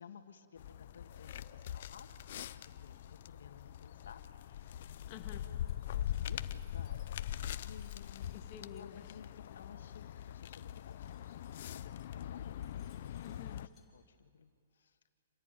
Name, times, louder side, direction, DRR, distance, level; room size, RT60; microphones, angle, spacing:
voice 1, 0.0-5.0 5.7-8.4 8.7-11.5 11.7-13.0 13.6-15.1, left 7 dB, 80° left, 7 dB, 1.6 m, -57 dB
sound 1, 0.6-13.7, left 11 dB, 50° left, 0.6 m, -42 dB
voice 2, 5.1-5.5 8.3-9.6 13.2-13.6, left 9 dB, 30° left, 3 dB, 1.9 m, -51 dB
Glass, 5.5-8.9 10.5-13.9, left 6 dB, 10° left, 3.3 m, -71 dB
27.5 x 15.0 x 9.2 m, 2.2 s
hypercardioid pair, 165°, 0 cm